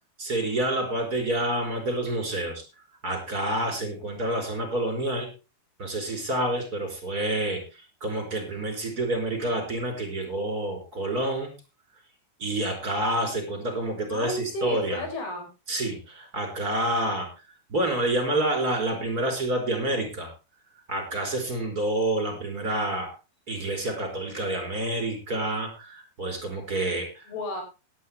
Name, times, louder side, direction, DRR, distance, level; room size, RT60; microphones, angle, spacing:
voice 1, 0.2-2.6 3.0-5.3 5.8-11.5 12.4-15.0 15.7-17.3 17.7-20.3 20.9-23.1 23.5-27.2, right 1 dB, 25° right, 4 dB, 5.0 m, -28 dB
voice 2, 14.1-15.5 27.3-27.6, left 1 dB, 90° left, 4 dB, 7.0 m, -32 dB
17.5 x 11.5 x 3.4 m, 0.30 s
omnidirectional pair, 4.3 m